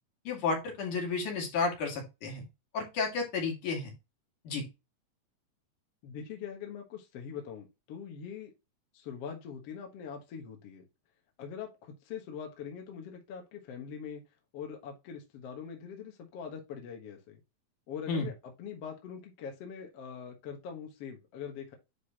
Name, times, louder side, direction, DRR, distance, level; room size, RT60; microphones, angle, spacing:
voice 1, 0.3-2.4 2.7-3.9 4.5-4.6 18.1-18.3, left 4 dB, 80° left, 1 dB, 3.9 m, -32 dB
voice 2, 6.0-8.5 8.9-10.8 11.4-14.2 14.5-17.4 17.9-18.3 18.6-21.8, left 7 dB, 60° left, 3 dB, 2.1 m, -43 dB
9.9 x 3.8 x 2.9 m, 0.24 s
omnidirectional pair, 3.5 m